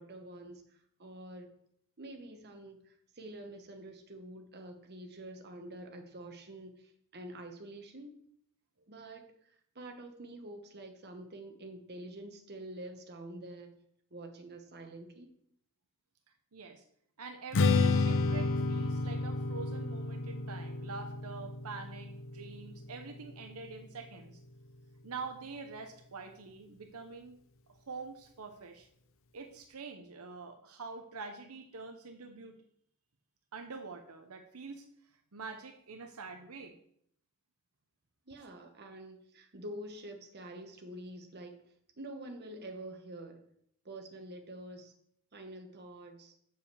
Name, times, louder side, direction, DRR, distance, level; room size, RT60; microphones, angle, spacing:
voice 1, 0.0-1.5 2.0-8.1 8.9-13.8 14.1-15.3 38.3-41.6 42.0-43.4 43.8-44.9 45.3-46.3, right 1 dB, 50° right, 4 dB, 1.2 m, -47 dB
voice 2, 16.5-16.8 17.2-24.4 25.0-27.4 27.7-28.9 29.3-32.6 33.5-34.8 35.3-36.7, right 4 dB, 80° right, 5 dB, 0.8 m, -45 dB
Strum, 17.5-23.8, left 3 dB, 65° left, 0.6 m, -31 dB
7.1 x 5.1 x 7.0 m, 0.68 s
head